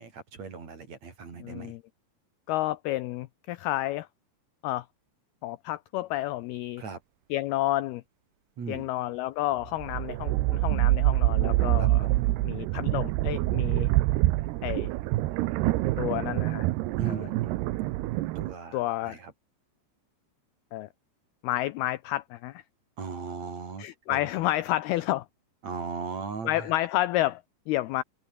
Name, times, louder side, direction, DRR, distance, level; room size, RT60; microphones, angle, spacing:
voice 1, 0.0-1.7 6.8-7.0 8.6-8.9 11.8-12.2 17.0-17.6 18.4-19.3 23.0-24.2 25.6-26.7, right 5 dB, 40° right, 4.4 m, -38 dB
voice 2, 1.4-1.8 2.5-4.1 4.6-4.9 5.4-6.8 7.3-8.0 8.7-12.0 12.4-13.9 14.6-14.9 16.0-16.7 17.1-17.3 18.7-19.2 20.7-20.9 21.4-22.6 23.8-25.3 26.4-28.0, left 15 dB, 80° left, 2.3 m, -30 dB
sound 1, 9.7-18.5, right 17 dB, 80° right, 2.6 m, -26 dB
open air
omnidirectional pair, 5.3 m